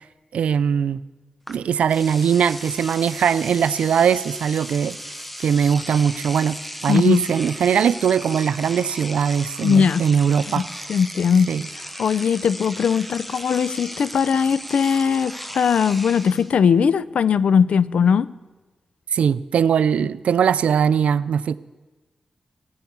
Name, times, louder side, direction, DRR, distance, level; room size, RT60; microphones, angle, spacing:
voice 1, 0.3-1.0 1.5-5.0 5.4-10.7 11.5-11.6 19.1-21.6, right 7 dB, 80° right, 0.4 m, -20 dB
Engine / Domestic sounds home sounds, 1.5-1.6 1.9-16.5, equal, 5° left, 1.0 m, -36 dB
voice 2, 6.9-7.3 9.6-10.0 10.5-10.6 10.9-11.5 12.0-18.3, left 6 dB, 75° left, 0.4 m, -19 dB
15.0 x 7.1 x 9.3 m
cardioid pair, 55°, 2 cm